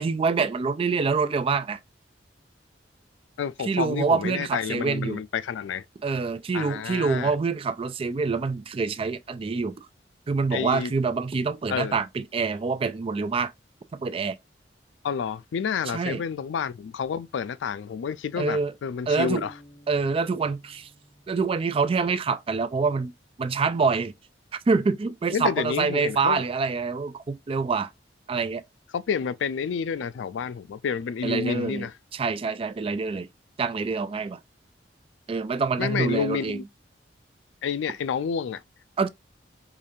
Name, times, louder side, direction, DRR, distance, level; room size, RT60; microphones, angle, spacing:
voice 1, 0.0-1.8 3.6-5.2 6.0-9.9 10.3-13.5 13.9-14.4 15.9-16.2 18.4-18.7 19.1-19.5 19.9-20.9 21.3-23.1 23.4-24.1 24.7-27.9 28.3-28.6 31.2-33.3 33.6-34.4 35.3-36.6 39.0-39.1, right 4 dB, 30° right, 0.3 m, -26 dB
voice 2, 3.4-5.8 6.5-7.3 10.5-10.9 11.7-12.0 15.0-19.5 25.3-26.4 28.9-31.9 35.8-36.7 37.6-38.6, left 6 dB, 90° left, 0.3 m, -29 dB
sound 1, 19.1-22.8, left 1 dB, 70° left, 2.7 m, -50 dB
4.9 x 2.4 x 2.7 m
head